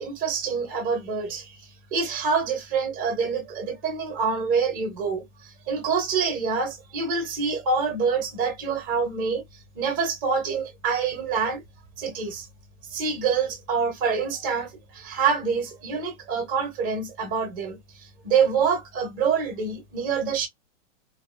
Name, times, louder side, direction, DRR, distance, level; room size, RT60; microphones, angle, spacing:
voice 1, 0.0-1.6 1.9-5.2 5.7-9.4 9.8-11.6 12.0-12.5 12.9-17.8 18.2-20.5, right 5 dB, 15° right, 0.4 m, -26 dB
2.7 x 2.3 x 2.3 m
supercardioid pair, 160°, 39 cm